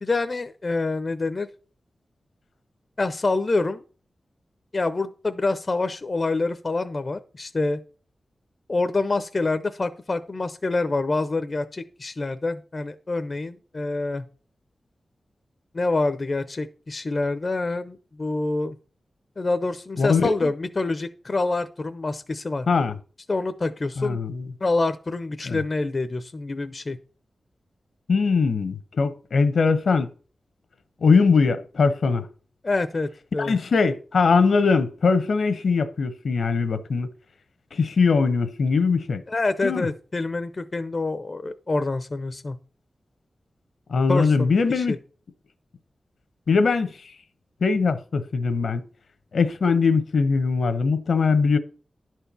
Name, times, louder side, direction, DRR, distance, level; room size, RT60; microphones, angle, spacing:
voice 1, 0.0-1.5 3.0-3.8 4.7-7.8 8.7-14.2 15.7-18.7 19.4-22.7 23.3-24.2 24.6-27.0 32.6-33.6 39.3-42.6 44.1-45.0, left 3 dB, 40° left, 0.6 m, -26 dB
voice 2, 20.0-20.5 22.7-23.0 24.0-24.5 25.5-25.6 28.1-30.1 31.0-32.3 33.4-37.1 37.7-39.2 39.6-39.9 43.9-44.9 46.5-46.9 47.6-48.8 49.3-51.6, left 4 dB, 75° left, 1.0 m, -21 dB
11.0 x 4.5 x 6.8 m
wide cardioid pair, 105°, 0 cm